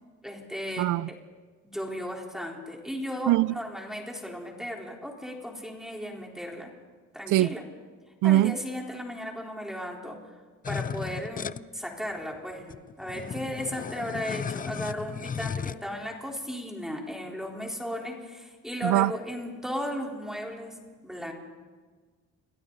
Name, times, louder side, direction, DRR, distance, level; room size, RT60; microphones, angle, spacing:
voice 1, 0.2-1.2 1.6-6.7 7.1-7.6 8.2-10.2 10.7-20.8 21.0-21.3, equal, ahead, 4.2 m, -36 dB
voice 2, 0.8-1.1 3.3-3.5 7.3-7.5 8.2-8.6 18.8-19.1, right 16 dB, 80° right, 0.5 m, -22 dB
sound 1, 10.6-11.6 12.3-12.4 12.6-15.7, left 6 dB, 30° left, 0.5 m, -35 dB
28.5 x 23.5 x 4.1 m
cardioid pair, 90°, 30 cm